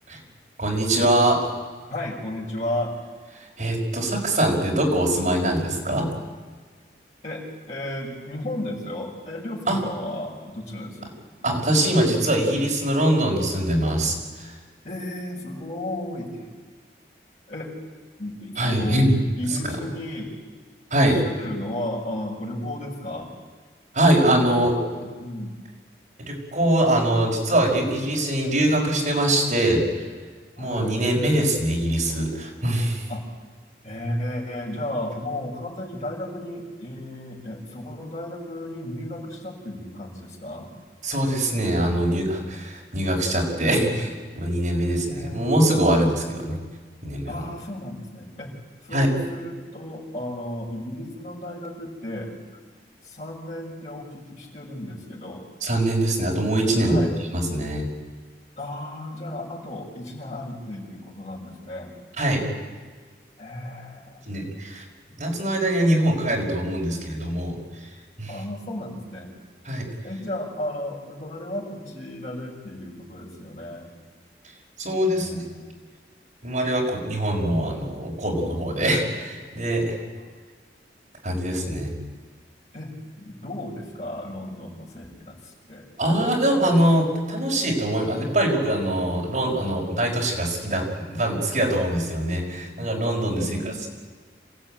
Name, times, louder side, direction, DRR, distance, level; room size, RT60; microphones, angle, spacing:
voice 1, 0.6-1.5 3.4-6.1 9.7-9.8 11.4-14.5 18.6-19.1 19.5-19.7 20.9-21.2 23.9-24.7 26.2-30.1 30.6-33.1 41.0-46.6 47.0-47.4 48.9-49.1 55.6-57.1 57.3-57.9 62.2-62.5 64.3-64.8 65.2-67.9 68.2-68.4 69.6-69.9 74.8-75.4 76.4-80.0 81.2-81.9 86.0-93.7, right 1 dB, 45° right, -1 dB, 5.5 m, -23 dB
voice 2, 1.9-3.0 7.2-11.2 14.8-16.5 17.5-17.7 18.2-19.1 19.3-20.3 21.1-23.3 24.2-25.6 30.6-31.0 33.1-33.3 33.8-40.7 45.1-45.5 47.3-48.5 48.8-52.3 53.0-55.4 56.8-57.1 58.6-61.9 63.4-64.3 68.3-69.3 70.0-73.9 75.1-75.7 82.7-85.9 93.4-93.9, left 1 dB, 40° left, -2 dB, 5.9 m, -34 dB
27.5 x 16.0 x 8.9 m, 1.5 s
head